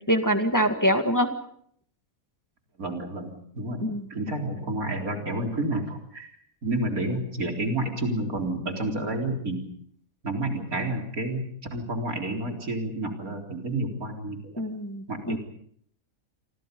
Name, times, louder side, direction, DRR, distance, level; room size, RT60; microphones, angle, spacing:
voice 1, 0.1-1.3 3.8-4.0 14.6-15.4, equal, 15° left, 6 dB, 1.9 m, -24 dB
voice 2, 2.8-3.8 4.1-6.3 6.6-9.6 10.2-11.4 11.7-14.5 15.1-15.4, right 1 dB, 90° right, 3 dB, 4.4 m, -30 dB
29.0 x 24.0 x 5.4 m, 0.64 s
omnidirectional pair, 1.5 m